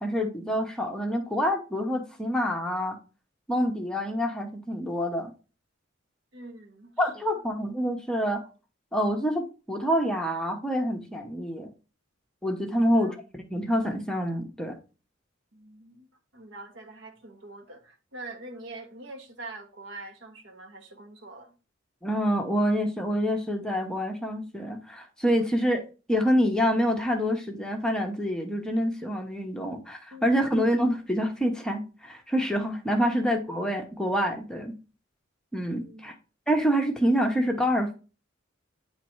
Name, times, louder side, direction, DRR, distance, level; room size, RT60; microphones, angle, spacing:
voice 1, 0.0-3.0 3.5-5.3 7.0-8.4 8.9-11.7 12.4-14.8 22.0-25.8 26.1-34.8 35.5-36.1 36.5-37.9, equal, 5° left, 0.8 m, -27 dB
voice 2, 6.3-7.3 12.8-13.1 15.5-21.6 30.1-30.3 33.0-33.1 35.8-36.1, right 2 dB, 65° right, 1.1 m, -44 dB
8.9 x 3.1 x 4.5 m
head